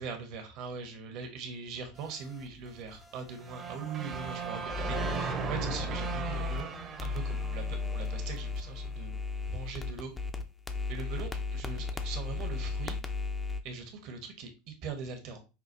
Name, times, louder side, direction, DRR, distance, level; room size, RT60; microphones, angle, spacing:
voice 1, 0.0-6.7 7.0-10.1 10.9-13.0 13.6-15.4, right 5 dB, 60° right, 5 dB, 1.1 m, -41 dB
sound 1, 2.0-6.6 7.0-13.6, left 4 dB, 20° left, 0.6 m, -36 dB
sound 2, 3.4-8.5, right 5 dB, 40° right, 0.9 m, -37 dB
5.8 x 2.3 x 2.6 m, 0.30 s
hypercardioid pair, 90°, 0 cm